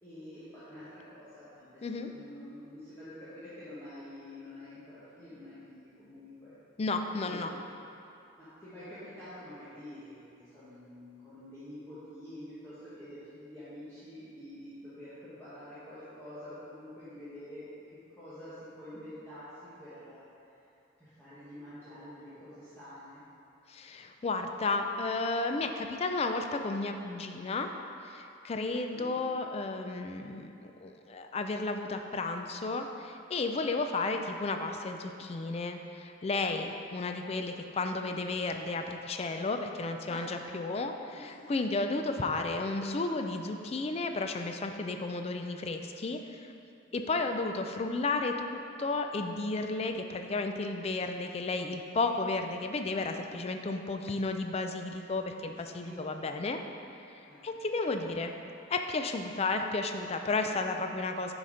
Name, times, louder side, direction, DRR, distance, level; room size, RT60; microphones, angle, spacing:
voice 1, 0.0-6.5 7.2-7.8 8.4-17.7 18.1-19.5 19.8-20.2 21.0-23.2 28.9-29.2 36.5-36.6 40.1-40.4 41.1-41.6 46.9-47.3 55.6-56.3 57.2-57.5 60.4-60.8, left 1 dB, 10° left, -14 dB, 1.3 m, -48 dB
voice 2, 6.8-7.5 23.7-27.7 28.0-46.5 46.9-56.6 57.1-58.3 58.7-61.3, left 3 dB, 30° left, 5 dB, 0.3 m, -33 dB
7.5 x 4.1 x 5.0 m, 2.7 s
head